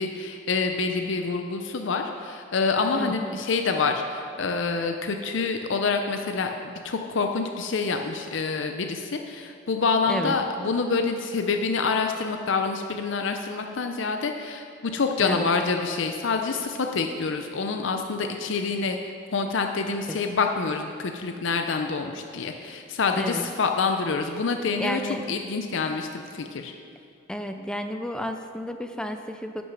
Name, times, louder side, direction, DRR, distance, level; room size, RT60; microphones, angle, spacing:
voice 1, 0.0-19.0 19.3-25.0 25.3-26.7, left 4 dB, 65° left, 5 dB, 0.5 m, -27 dB
voice 2, 3.0-3.4 10.1-10.4 15.2-15.5 20.1-20.2 23.2-23.5 24.8-25.2 27.3-29.6, equal, 5° left, 6 dB, 0.4 m, -31 dB
10.5 x 6.2 x 6.1 m, 2.3 s
head